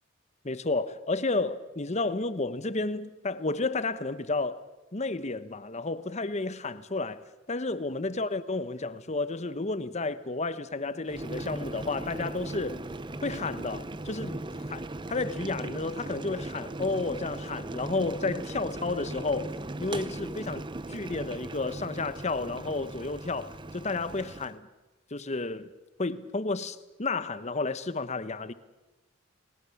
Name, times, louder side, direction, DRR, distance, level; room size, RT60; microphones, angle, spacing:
voice 1, 0.4-4.6 4.9-7.2 7.5-12.8 13.2-14.4 14.7-14.8 15.1-20.6 20.9-24.7 25.1-25.7 26.0-28.5, left 3 dB, 35° left, 1.0 m, -31 dB
Boiling, 11.0-24.5, right 2 dB, 25° right, 0.8 m, -38 dB
29.5 x 20.0 x 7.2 m
head